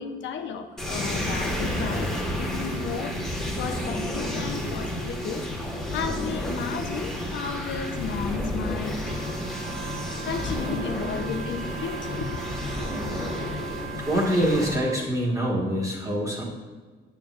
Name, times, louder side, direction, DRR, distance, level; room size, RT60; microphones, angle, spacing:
voice 1, 0.0-3.1 3.6-5.4 5.9-9.1 10.2-12.4, left 6 dB, 70° left, 6 dB, 0.7 m, -33 dB
sound 1, 0.8-14.8, left 1 dB, 5° left, 1.7 m, -31 dB
Wind instrument woodwind instrument, 9.0-15.1, right 8 dB, 55° right, 0.8 m, -40 dB
voice 2, 14.1-16.4, equal, 15° right, -4 dB, 1.7 m, -25 dB
7.5 x 7.0 x 2.5 m, 1.4 s
cardioid pair, 90°, 20 cm